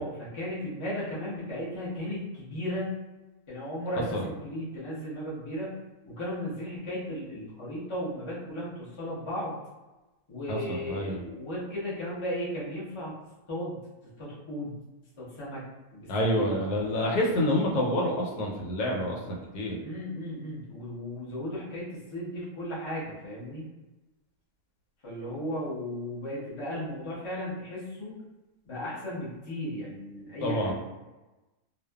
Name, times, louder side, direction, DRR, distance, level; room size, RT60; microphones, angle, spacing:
voice 1, 0.0-2.9 3.5-5.8 6.1-9.6 10.3-13.1 13.5-13.8 14.2-14.7 15.2-15.6 15.9-16.7 19.8-23.6 25.0-28.2 28.6-30.7, equal, 30° left, -7 dB, 0.5 m, -35 dB
voice 2, 10.5-11.2 16.1-19.8 30.4-30.7, left 1 dB, 90° left, -1 dB, 1.2 m, -28 dB
2.5 x 2.3 x 2.2 m, 1.1 s
omnidirectional pair, 1.7 m